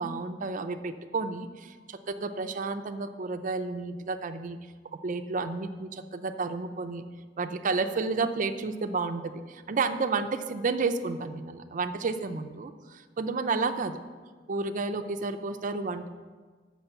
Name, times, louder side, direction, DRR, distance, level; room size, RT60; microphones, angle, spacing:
voice 1, 0.0-4.6 4.9-7.0 7.4-14.0 14.5-16.1, right 4 dB, 45° right, 9 dB, 0.5 m, -31 dB
6.7 x 6.0 x 7.1 m, 1.5 s
head